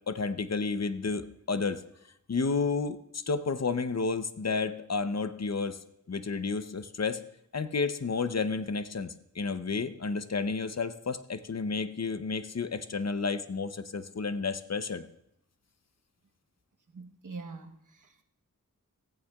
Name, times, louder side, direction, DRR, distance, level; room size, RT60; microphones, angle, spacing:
voice 1, 0.1-1.8 2.3-5.8 6.1-7.2 7.5-15.1, left 4 dB, 55° left, 11 dB, 0.7 m, -31 dB
voice 2, 16.9-18.2, right 4 dB, 75° right, 5 dB, 1.1 m, -44 dB
16.0 x 14.5 x 2.3 m, 0.80 s
wide cardioid pair, 55°, 31 cm